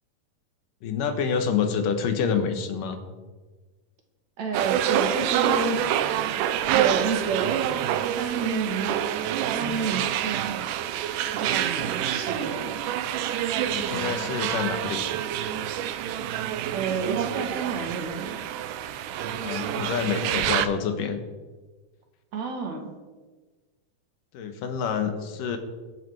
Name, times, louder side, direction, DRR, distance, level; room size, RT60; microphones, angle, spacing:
voice 1, 0.8-3.0 13.7-15.0 19.2-21.2 24.3-25.6, left 6 dB, 80° left, 7 dB, 2.9 m, -27 dB
voice 2, 4.4-5.9 6.7-7.8 8.2-9.1 9.5-10.6 11.3-12.8 16.7-18.3 22.3-22.9, right 4 dB, 60° right, 3 dB, 3.0 m, -30 dB
sound 1, 4.5-20.7, right 11 dB, 80° right, 2.2 m, -27 dB
22.0 x 8.1 x 4.7 m, 1.3 s
omnidirectional pair, 3.7 m